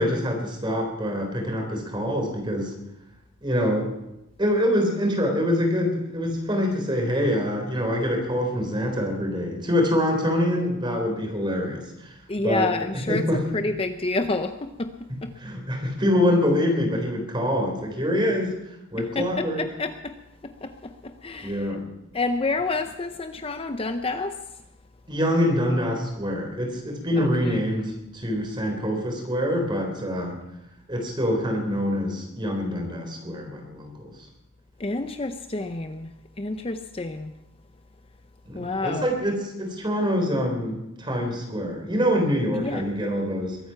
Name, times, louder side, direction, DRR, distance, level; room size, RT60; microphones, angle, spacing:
voice 1, 0.0-2.7 3.4-3.9 4.4-12.1 12.4-13.4 15.4-18.5 18.9-19.6 21.4-21.8 25.1-30.4 30.9-34.1 38.5-43.6, equal, 25° right, 2 dB, 3.7 m, -25 dB
voice 2, 12.3-13.3 13.5-15.3 19.0-20.2 20.4-21.7 22.1-24.4 27.2-27.6 34.8-36.1 36.4-37.4 38.5-39.1 42.5-42.8, left 3 dB, 30° left, 8 dB, 0.6 m, -29 dB
22.5 x 9.2 x 5.8 m, 0.89 s
head